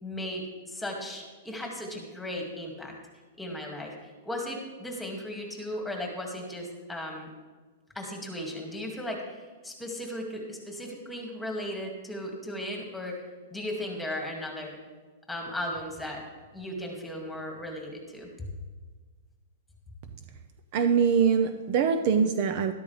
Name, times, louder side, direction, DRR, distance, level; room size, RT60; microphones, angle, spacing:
voice 1, 0.0-2.9 3.4-3.9 4.2-7.3 7.9-13.2 13.5-14.8 15.3-16.2 16.5-18.3, left 1 dB, 5° left, 0 dB, 2.1 m, -36 dB
voice 2, 20.7-22.7, right 6 dB, 45° right, 8 dB, 0.7 m, -23 dB
12.5 x 12.0 x 3.4 m, 1.4 s
hypercardioid pair, 145°, 0 cm